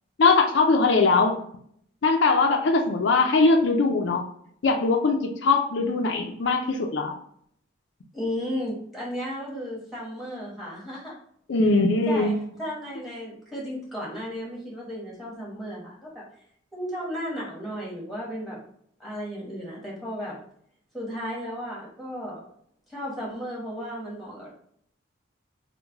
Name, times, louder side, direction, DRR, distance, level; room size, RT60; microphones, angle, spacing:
voice 1, 0.2-1.4 2.0-4.3 4.6-7.1 11.5-12.3, left 3 dB, 65° left, 2 dB, 0.4 m, -21 dB
voice 2, 8.1-11.2 12.1-16.2 16.7-18.6 19.0-20.4 20.9-22.4 22.9-24.5, equal, ahead, -5 dB, 1.1 m, -34 dB
3.1 x 2.2 x 3.4 m, 0.66 s
head